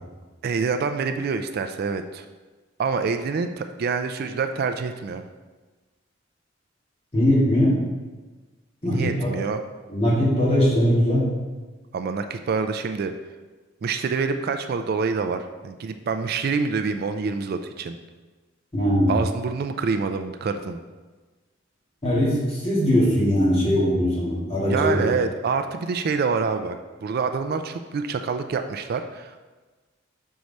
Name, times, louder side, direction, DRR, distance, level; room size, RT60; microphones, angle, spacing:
voice 1, 0.4-2.2 2.8-5.2 8.8-9.6 11.9-13.1 13.8-18.0 19.1-20.8 24.7-26.8 27.0-29.4, right 5 dB, 50° right, 8 dB, 0.3 m, -26 dB
voice 2, 7.1-7.8 8.8-9.4 9.9-11.2 18.7-19.2 22.0-25.1, equal, 30° left, -7 dB, 2.2 m, -20 dB
6.4 x 4.7 x 4.1 m, 1.3 s
head